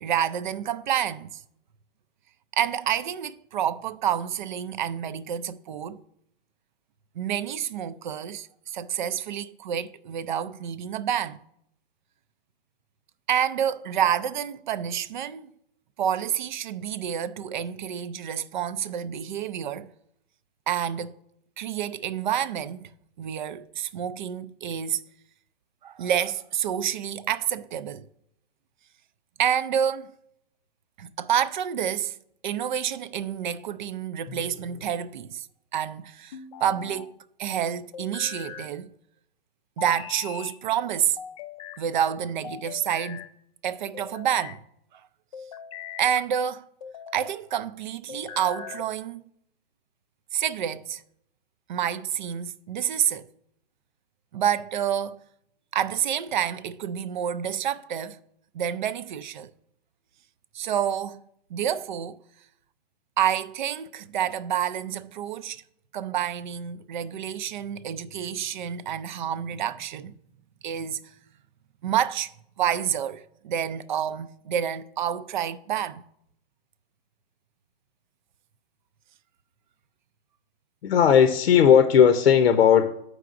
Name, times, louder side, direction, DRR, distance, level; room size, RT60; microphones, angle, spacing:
voice 1, 0.0-1.4 2.5-6.0 7.2-11.4 13.3-15.5 16.0-19.9 20.7-21.1 21.6-22.9 23.2-25.0 25.8-28.1 29.4-30.2 31.0-32.1 32.4-35.5 35.7-37.1 37.4-38.9 39.8-41.2 41.8-43.3 43.6-44.6 44.9-45.0 46.0-46.7 47.1-49.2 50.3-51.0 51.7-53.3 54.3-55.2 55.7-58.2 58.5-59.5 60.5-61.2 61.5-62.2 63.2-65.6 65.9-70.1 70.6-71.0 71.8-72.3 72.6-76.0, right 9 dB, 50° right, 0.4 m, -28 dB
sound 1, 34.3-34.9 36.3-37.1 37.9-38.7 39.8-40.6 41.2-41.8 42.4-43.3 43.9-44.6 45.3-46.3 46.8-47.3 48.1-48.9, left 8 dB, 35° left, 0.4 m, -41 dB
voice 2, 80.8-82.9, left 8 dB, 85° left, 0.8 m, -17 dB
14.0 x 4.7 x 2.5 m
hypercardioid pair, 155°, 30 cm